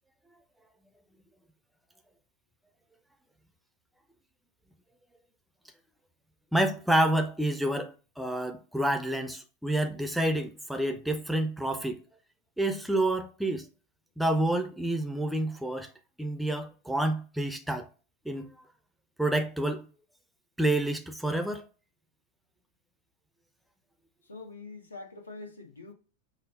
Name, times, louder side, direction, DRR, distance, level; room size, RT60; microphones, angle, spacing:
voice 1, 6.5-12.0 12.6-13.7 14.2-15.9 16.2-17.9 18.3-18.5 19.2-19.8 20.6-21.7, right 1 dB, ahead, 0.5 m, -28 dB
voice 2, 24.3-25.9, left 3 dB, 75° left, 1.0 m, -44 dB
5.5 x 2.0 x 3.7 m
figure-of-eight pair, 90°, 0 cm